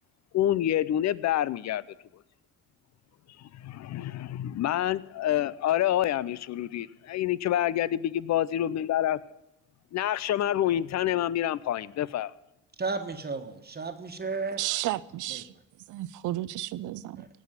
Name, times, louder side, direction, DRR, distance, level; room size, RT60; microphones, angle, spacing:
voice 1, 0.3-1.8 3.4-9.2 9.9-12.3, left 12 dB, 60° left, 0.6 m, -27 dB
voice 2, 12.8-14.6 15.3-15.4 17.2-17.3, right 4 dB, 30° right, 1.4 m, -33 dB
voice 3, 14.6-15.5 15.9-17.2, right 15 dB, 80° right, 0.6 m, -32 dB
17.0 x 6.2 x 9.7 m
cardioid pair, 90°, 30 cm